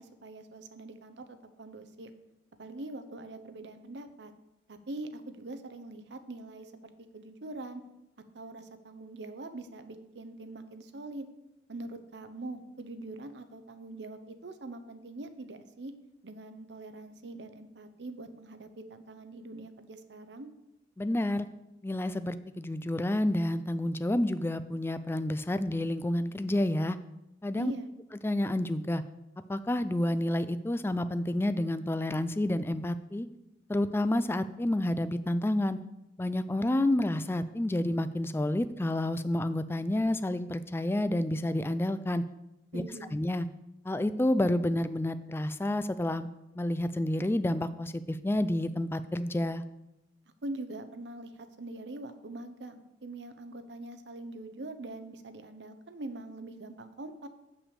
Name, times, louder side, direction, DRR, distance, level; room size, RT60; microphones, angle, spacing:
voice 1, 0.0-2.1 2.6-4.3 4.7-7.8 8.3-11.3 11.7-15.9 16.2-20.5 27.5-27.9 42.7-43.2 50.4-57.3, right 2 dB, 65° right, 9 dB, 0.8 m, -43 dB
voice 2, 21.0-21.5 21.8-27.0 27.4-27.7 28.2-29.0 29.5-33.3 33.7-35.8 36.2-42.2 42.7-42.8 43.1-43.5 43.8-46.3 46.6-49.6, left 1 dB, 15° left, 12 dB, 0.3 m, -29 dB
6.9 x 6.0 x 6.5 m, 0.90 s
head